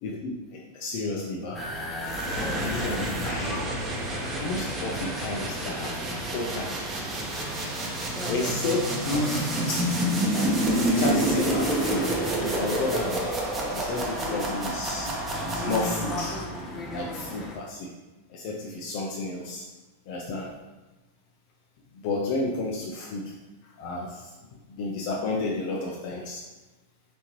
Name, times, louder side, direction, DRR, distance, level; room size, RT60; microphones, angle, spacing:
voice 1, 0.0-1.6 2.5-3.6 4.4-6.0 6.3-6.9 8.3-9.9 10.3-12.1 12.4-13.3 13.7-15.1 15.5-16.4 16.9-17.9 18.3-19.6 20.1-20.5 22.0-23.3 23.8-24.3 24.8-26.4, left 3 dB, 50° left, -1 dB, 0.5 m, -31 dB
sound 1, 1.5-17.5, left 1 dB, 20° left, 0.7 m, -37 dB
sound 2, 2.0-16.3, right 1 dB, 25° right, 1.0 m, -29 dB
4.0 x 3.5 x 3.0 m, 1.1 s
figure-of-eight pair, 95°, 0 cm